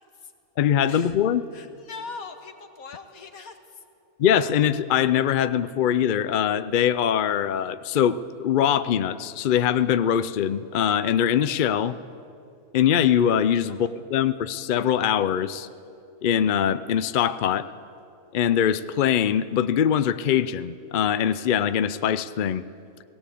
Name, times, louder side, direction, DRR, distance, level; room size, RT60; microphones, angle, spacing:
voice 1, 0.6-1.4 4.2-12.0 12.7-15.7 16.2-17.7 18.3-22.6, left 9 dB, 65° left, 13 dB, 0.5 m, -22 dB
voice 2, 1.5-3.8 13.7-13.9, left 4 dB, 85° left, 6 dB, 1.9 m, -41 dB
17.5 x 17.5 x 8.4 m, 2.5 s
omnidirectional pair, 1.5 m